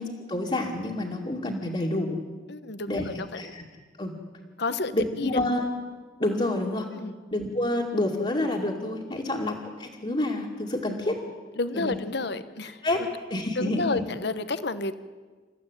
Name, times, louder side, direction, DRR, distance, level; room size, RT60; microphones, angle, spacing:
voice 1, 0.0-2.2 2.9-3.1 3.4-3.6 4.0-4.2 4.9-5.7 6.2-6.9 7.3-11.2 11.7-11.9 12.8-13.0 13.3-13.9, left 1 dB, 30° left, -4 dB, 2.5 m, -28 dB
voice 2, 2.5-3.5 4.6-5.4 6.9-7.1 9.2-9.4 11.6-12.8 13.6-15.0, left 3 dB, 60° left, 12 dB, 1.1 m, -31 dB
28.0 x 14.5 x 9.2 m, 1.4 s
head